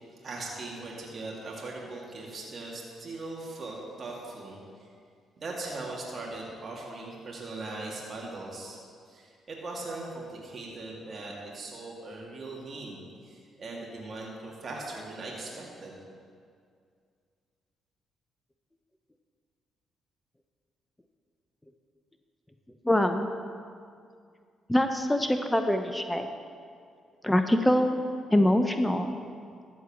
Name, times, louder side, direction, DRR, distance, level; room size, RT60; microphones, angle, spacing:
voice 1, 0.2-4.9 5.4-8.8 9.1-16.0, right 2 dB, 45° right, -3 dB, 2.4 m, -40 dB
voice 2, 22.8-23.3 24.7-26.3 27.2-28.0 28.3-29.1, left 1 dB, 10° left, 7 dB, 0.8 m, -24 dB
14.0 x 4.6 x 7.4 m, 2.3 s
hypercardioid pair, 45°, 0 cm